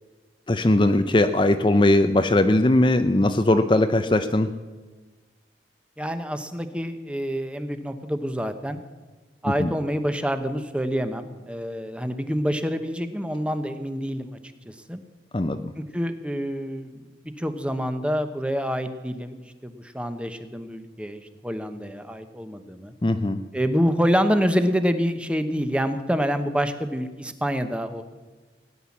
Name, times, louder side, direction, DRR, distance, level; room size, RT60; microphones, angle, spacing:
voice 1, 0.5-4.5 9.4-9.7 15.3-15.7 23.0-23.4, left 1 dB, 25° left, 8 dB, 0.5 m, -20 dB
voice 2, 6.0-8.8 9.4-14.4 14.6-15.0 15.8-17.1 17.4-22.9 23.5-28.0, equal, 5° right, 9 dB, 0.9 m, -27 dB
17.5 x 10.0 x 7.2 m, 1.3 s
head